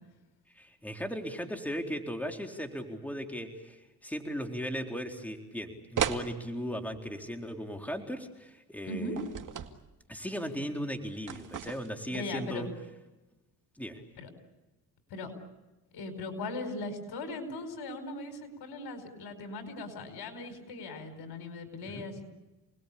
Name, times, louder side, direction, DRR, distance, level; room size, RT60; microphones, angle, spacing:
voice 1, 0.6-9.2 10.1-12.7 13.8-14.0 21.9-22.1, equal, 5° left, 3 dB, 4.0 m, -37 dB
sound 1, 6.0-6.3 9.2-9.8 11.3-12.0, right 8 dB, 50° right, 2.2 m, -34 dB
voice 2, 8.8-9.2 12.1-12.7 14.2-14.3 15.1-15.3 15.9-22.2, left 2 dB, 75° left, 7 dB, 5.0 m, -39 dB
29.5 x 20.5 x 8.6 m, 1.1 s
supercardioid pair, 65°, 39 cm